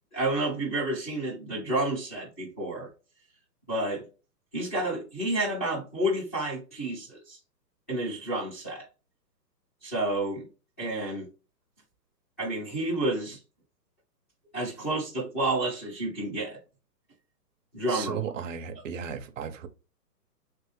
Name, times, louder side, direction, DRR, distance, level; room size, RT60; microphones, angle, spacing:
voice 1, 0.1-2.9 3.7-4.0 4.5-7.4 7.9-8.9 9.8-10.5 10.8-11.3 12.4-13.4 14.5-16.6 17.7-18.2, right 1 dB, 10° left, 0.5 m, -30 dB
voice 2, 17.9-19.7, right 7 dB, 50° right, 0.7 m, -35 dB
3.4 x 3.2 x 3.1 m
hypercardioid pair, 145°, 49 cm